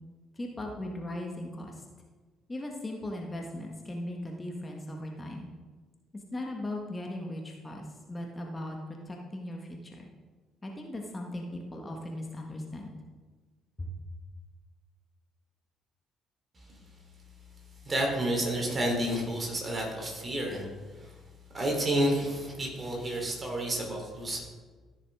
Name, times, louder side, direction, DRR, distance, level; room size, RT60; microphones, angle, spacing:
voice 1, 0.4-1.7 2.5-5.5 6.3-7.8 8.1-8.8 9.1-10.1 10.6-12.9 13.8-13.9, left 1 dB, 25° left, 1 dB, 1.6 m, -38 dB
voice 2, 17.8-20.7 20.9-21.1 21.5-24.4, right 1 dB, 30° right, 0 dB, 3.6 m, -30 dB
14.5 x 6.7 x 3.7 m, 1.4 s
hypercardioid pair, 50°, 0 cm